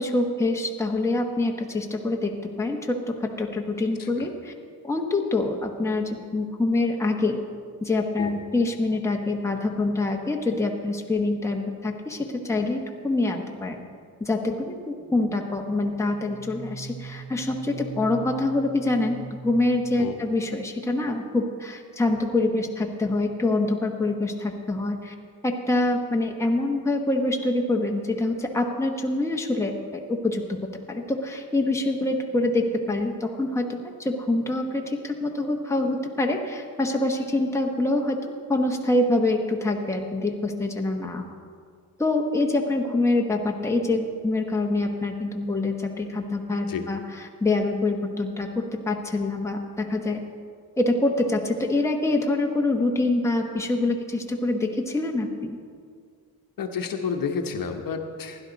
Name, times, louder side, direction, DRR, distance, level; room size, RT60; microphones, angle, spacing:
voice 1, 0.0-4.5 4.8-7.4 7.8-13.8 14.2-25.1 25.4-30.4 30.9-41.3 42.0-50.2 50.8-55.6, left 2 dB, 5° left, 1 dB, 1.1 m, -25 dB
sound 1, 15.0-20.6, right 4 dB, 25° left, 1.4 m, -41 dB
voice 2, 56.6-58.4, left 6 dB, 60° left, 4 dB, 1.1 m, -30 dB
16.0 x 11.0 x 4.0 m, 2.1 s
cardioid pair, 110°, 38 cm